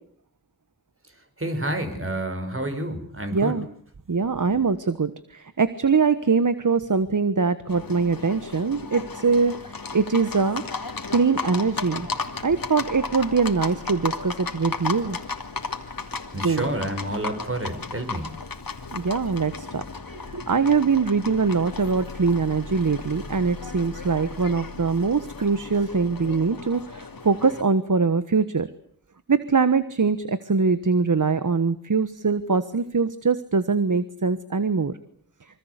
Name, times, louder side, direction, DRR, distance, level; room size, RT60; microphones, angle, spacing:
voice 1, 1.4-3.6 16.3-18.3, right 1 dB, 40° right, 7 dB, 5.8 m, -29 dB
voice 2, 3.3-3.6 4.1-10.6 11.1-12.1 12.4-15.2 16.4-16.7 18.9-19.8 20.3-28.7 29.3-34.9, right 4 dB, 60° right, 13 dB, 1.3 m, -23 dB
Livestock farm animals working animals, 7.7-27.6, left 4 dB, 75° left, 2.8 m, -35 dB
26.5 x 25.0 x 8.3 m, 0.62 s
wide cardioid pair, 70°, 35 cm